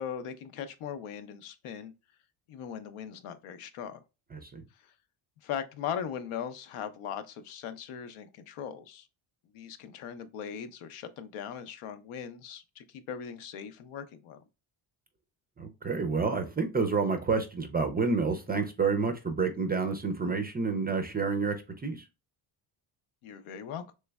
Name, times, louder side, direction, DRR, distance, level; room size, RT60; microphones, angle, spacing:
voice 1, 0.0-1.9 2.5-4.0 4.8-4.9 5.4-9.1 9.5-14.4 23.2-23.9, left 8 dB, 80° left, 0.7 m, -39 dB
voice 2, 4.3-4.6 15.6-21.5 21.8-22.0, right 4 dB, 20° right, 0.4 m, -29 dB
3.2 x 3.1 x 2.2 m
cardioid pair, 100°, 50 cm